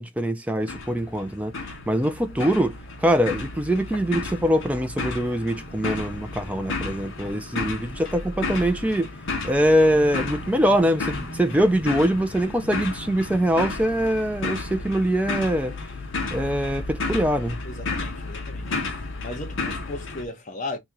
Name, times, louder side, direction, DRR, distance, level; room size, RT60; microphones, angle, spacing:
voice 1, 0.0-1.5 1.9-9.1 9.4-15.7 16.3-17.6, equal, 5° right, 0.3 m, -23 dB
sound 1, 0.6-20.2, left 3 dB, 60° left, 0.9 m, -33 dB
voice 2, 17.6-20.8, left 2 dB, 35° left, 0.9 m, -36 dB
2.9 x 2.8 x 3.6 m
head